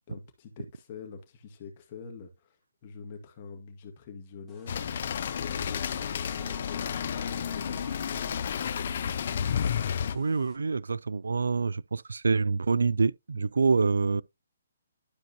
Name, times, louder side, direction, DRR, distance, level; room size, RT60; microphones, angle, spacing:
voice 1, 0.1-2.6 2.8-9.1, left 5 dB, 35° left, 2.0 m, -46 dB
sound 1, 4.5-10.6, left 2 dB, 5° left, 2.1 m, -49 dB
sound 2, 4.7-10.2, left 8 dB, 50° left, 0.7 m, -31 dB
voice 2, 10.1-14.2, right 4 dB, 85° right, 0.3 m, -26 dB
12.0 x 4.8 x 2.9 m
hypercardioid pair, 160°, 0 cm